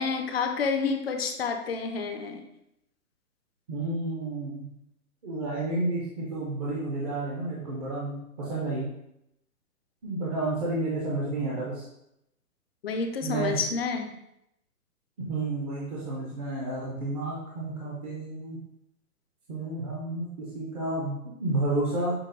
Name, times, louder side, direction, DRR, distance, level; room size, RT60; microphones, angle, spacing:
voice 1, 0.0-2.4 12.8-14.1, left 5 dB, 40° left, 5 dB, 0.5 m, -29 dB
voice 2, 3.7-4.7 5.2-8.9 10.0-11.8 13.2-13.6 15.2-18.6 19.5-22.1, right 2 dB, 25° right, -5 dB, 0.6 m, -31 dB
6.5 x 2.3 x 2.6 m, 0.81 s
hypercardioid pair, 140°, 46 cm